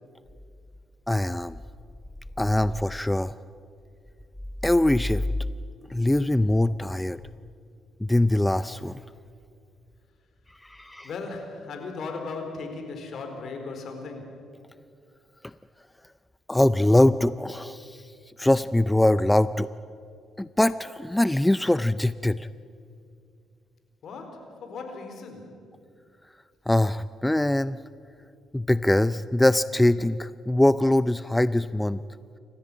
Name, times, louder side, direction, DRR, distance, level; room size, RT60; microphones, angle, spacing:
voice 1, 1.1-1.6 2.4-3.3 4.6-5.2 5.9-7.2 8.0-9.0 10.5-11.1 15.4-15.5 16.5-19.7 20.4-22.5 26.7-27.8 28.5-32.0, left 1 dB, 10° left, 15 dB, 0.4 m, -23 dB
voice 2, 11.0-14.4 24.0-25.6, left 4 dB, 65° left, 5 dB, 4.4 m, -37 dB
29.0 x 14.5 x 8.8 m, 2.4 s
cardioid pair, 90°, 0 cm